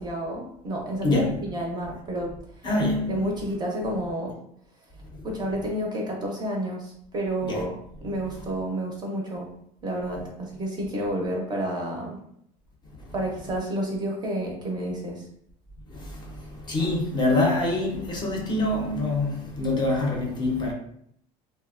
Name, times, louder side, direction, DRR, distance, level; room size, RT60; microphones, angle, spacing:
voice 1, 0.0-2.4 3.1-4.4 5.2-7.8 8.0-9.5 9.8-12.2 13.1-15.3, right 1 dB, 25° right, 0.5 m, -30 dB
voice 2, 1.0-1.4 2.6-3.2 5.1-5.2 7.4-7.6 15.9-20.7, left 2 dB, 25° left, 0.5 m, -25 dB
2.6 x 2.1 x 2.4 m
cardioid pair, 140°, 18 cm